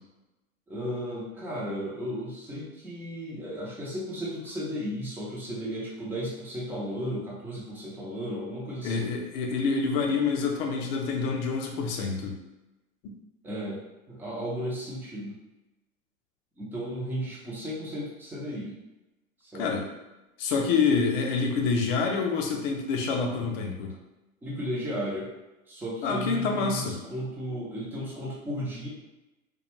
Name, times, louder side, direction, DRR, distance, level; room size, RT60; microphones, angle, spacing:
voice 1, 0.7-9.1 13.4-13.8 14.1-15.4 16.6-18.8 19.4-19.7 24.4-25.3 25.7-28.9, equal, 5° right, -6 dB, 0.5 m, -34 dB
voice 2, 8.8-12.4 19.6-19.9 20.4-23.9 26.0-27.0, left 5 dB, 40° left, 1 dB, 0.6 m, -27 dB
2.4 x 2.2 x 2.9 m, 1.0 s
hypercardioid pair, 105°, 42 cm